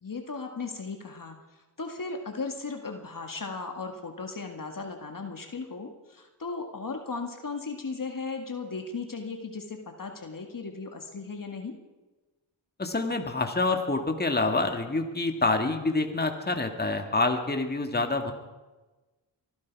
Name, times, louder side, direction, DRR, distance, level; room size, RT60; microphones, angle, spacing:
voice 1, 0.0-11.8, left 4 dB, 45° left, 4 dB, 1.9 m, -36 dB
voice 2, 12.8-18.3, left 3 dB, 20° left, 5 dB, 2.0 m, -27 dB
24.0 x 12.0 x 4.7 m, 1.2 s
cardioid pair, 50°, 46 cm